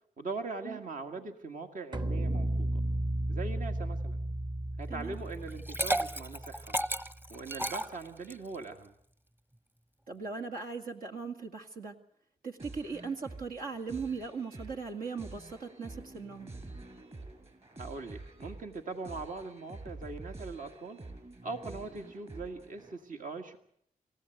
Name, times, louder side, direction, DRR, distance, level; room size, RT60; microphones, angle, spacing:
voice 1, 0.2-2.8 3.3-4.2 4.8-6.8 7.3-8.9 17.8-21.0 21.4-23.6, right 3 dB, 65° right, 5 dB, 1.8 m, -41 dB
sound 1, 1.9-7.2, right 1 dB, 30° right, 1.1 m, -34 dB
Liquid, 5.5-8.5, right 1 dB, 15° right, 0.9 m, -33 dB
voice 2, 10.1-11.9 12.4-16.5, right 5 dB, 85° right, 3 dB, 2.2 m, -39 dB
sound 2, 12.6-22.9, right 2 dB, 45° right, 6.6 m, -48 dB
27.5 x 15.0 x 8.0 m, 0.71 s
cardioid pair, 55°, 14 cm